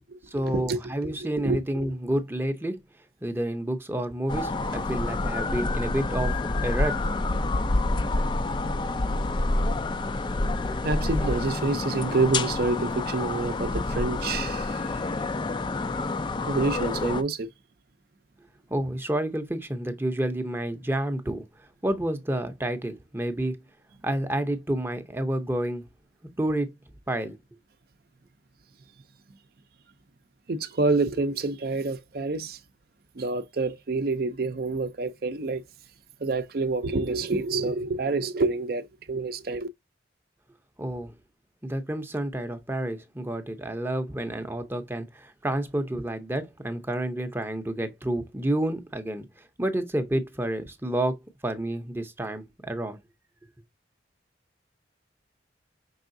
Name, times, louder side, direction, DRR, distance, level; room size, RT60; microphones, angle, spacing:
voice 1, 0.3-2.8 3.2-6.3 6.6-7.0 18.7-21.4 21.8-23.6 24.0-25.8 26.4-26.7 27.1-27.3 40.8-41.1 41.6-49.2 49.6-51.2 51.4-53.0, right 1 dB, 10° right, 0.6 m, -29 dB
voice 2, 1.4-1.8 10.8-14.8 16.5-17.5 30.5-32.6 33.2-35.6 36.2-39.7, right 3 dB, 55° right, 0.5 m, -27 dB
sound 1, 4.3-17.2, left 2 dB, 25° left, 0.3 m, -28 dB
5.5 x 3.5 x 2.6 m
head